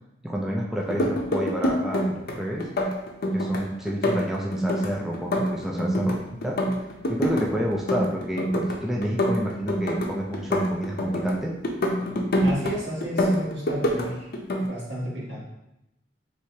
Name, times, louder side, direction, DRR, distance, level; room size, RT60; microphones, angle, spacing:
voice 1, 0.2-2.7 3.3-6.2 6.4-6.6 7.1-11.5, equal, ahead, -3 dB, 0.4 m, -29 dB
sound 1, 0.8-2.3 2.6-3.6 3.9-6.2 6.4-7.4 7.7-8.8 9.0-11.3 11.6-12.7 13.0-14.1 14.3-14.7, equal, 55° left, 0.6 m, -25 dB
voice 2, 12.4-14.3 14.6-15.4, equal, 70° right, -6 dB, 1.5 m, -32 dB
4.6 x 3.2 x 2.8 m, 0.87 s
head